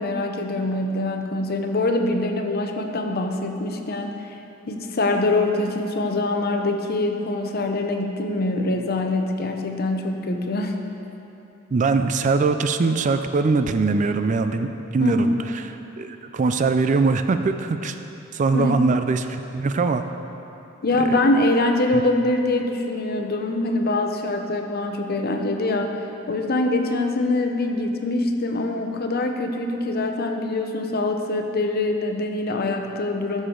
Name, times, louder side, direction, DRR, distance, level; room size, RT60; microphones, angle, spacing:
voice 1, 0.0-4.3 4.7-10.8 15.0-15.4 18.5-18.8 20.8-33.5, left 2 dB, 50° left, 4 dB, 0.7 m, -24 dB
voice 2, 11.7-18.0 18.3-20.0 21.1-21.2, right 4 dB, 40° right, 9 dB, 0.4 m, -22 dB
14.0 x 6.4 x 3.8 m, 3.0 s
head